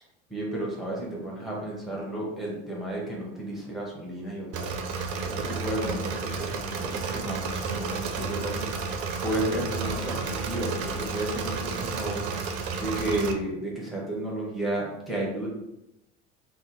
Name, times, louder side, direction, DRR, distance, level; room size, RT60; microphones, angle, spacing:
voice 1, 0.3-4.7 5.2-8.7 9.2-12.2 12.8-15.5, right 1 dB, ahead, -4 dB, 1.0 m, -32 dB
Engine / Mechanisms, 4.5-13.3, right 4 dB, 45° right, 0.5 m, -32 dB
2.7 x 2.0 x 4.0 m, 0.88 s
figure-of-eight pair, 70°, 36 cm